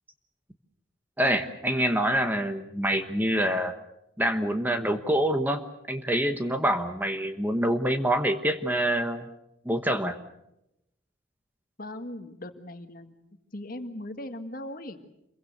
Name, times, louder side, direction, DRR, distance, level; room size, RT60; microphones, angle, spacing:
voice 1, 1.2-3.7 4.2-9.3 9.6-10.2, right 1 dB, 10° right, 8 dB, 1.2 m, -26 dB
voice 2, 11.8-13.2 13.5-15.0, left 1 dB, 45° left, 7 dB, 1.8 m, -39 dB
27.5 x 23.0 x 6.8 m, 0.83 s
head